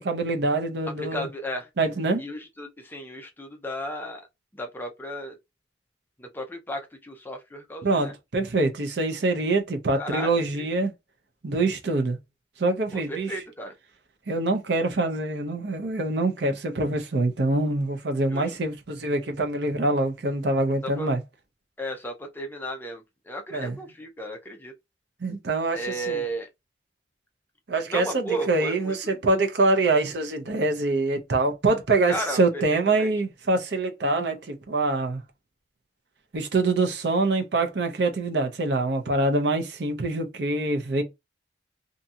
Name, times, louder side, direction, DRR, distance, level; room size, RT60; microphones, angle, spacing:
voice 1, 0.0-1.3 1.8-2.2 7.8-10.9 11.4-12.2 12.6-13.3 14.3-21.2 23.5-23.7 25.2-26.2 27.7-29.0 29.2-35.2 36.3-41.0, right 2 dB, 65° right, 0.6 m, -25 dB
voice 2, 1.0-1.7 2.2-4.3 4.5-5.4 6.2-8.1 9.9-10.7 12.9-13.7 18.3-18.5 20.8-21.1 21.8-24.7 25.7-26.5 27.9-29.2 32.1-33.1, right 1 dB, 10° left, 0.5 m, -34 dB
2.7 x 2.6 x 2.3 m
head